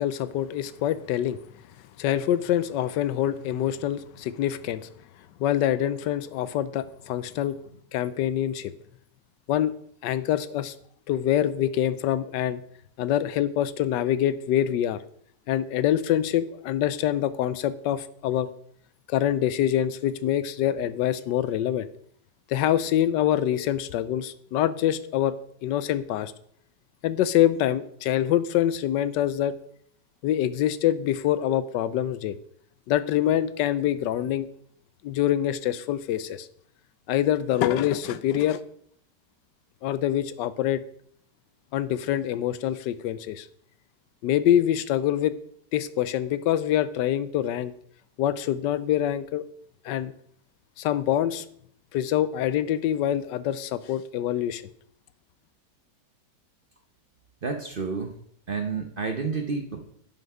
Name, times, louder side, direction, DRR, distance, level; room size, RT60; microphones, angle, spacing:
voice 1, 0.0-1.4 2.0-4.9 5.4-7.6 7.9-8.7 9.5-9.7 10.0-10.7 11.1-12.6 13.0-15.0 15.5-18.5 19.1-21.9 22.5-25.4 25.6-26.3 27.0-29.5 30.2-32.4 32.9-34.5 35.0-36.5 37.1-38.6 39.8-40.8 41.7-43.5 44.2-45.3 45.7-47.7 48.2-49.4 49.8-50.1 50.8-51.4 51.9-54.6, left 11 dB, 90° left, 15 dB, 1.3 m, -25 dB
voice 2, 57.4-58.2 58.5-59.9, right 4 dB, 45° right, 5 dB, 0.7 m, -30 dB
10.5 x 5.8 x 4.7 m, 0.65 s
omnidirectional pair, 1.9 m